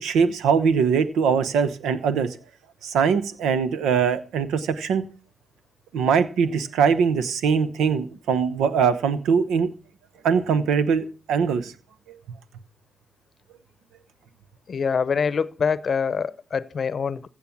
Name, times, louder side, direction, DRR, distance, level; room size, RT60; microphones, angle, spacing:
voice 1, 0.0-2.3 2.8-5.0 5.9-9.7 10.2-11.7, right 6 dB, 75° right, 0.9 m, -22 dB
voice 2, 14.7-17.3, left 6 dB, 55° left, 0.7 m, -25 dB
15.5 x 7.5 x 6.0 m
hypercardioid pair, 40°, 0 cm